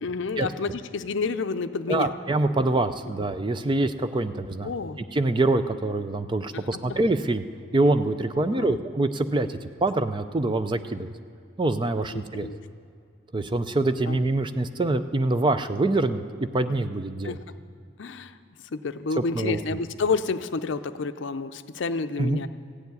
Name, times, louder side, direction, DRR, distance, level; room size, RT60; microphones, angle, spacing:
voice 1, 0.0-2.1 2.5-2.8 4.6-5.0 6.5-7.0 8.5-8.8 12.1-12.6 14.1-14.2 17.2-17.4 18.0-18.4 18.7-22.5, left 4 dB, 65° left, 10 dB, 0.5 m, -30 dB
voice 2, 1.9-4.7 5.1-7.4 7.7-11.1 11.6-12.5 13.3-16.2 16.5-17.4 19.3-19.6 22.2-22.4, right 2 dB, 25° right, 10 dB, 0.4 m, -25 dB
15.0 x 7.2 x 9.4 m, 2.3 s
head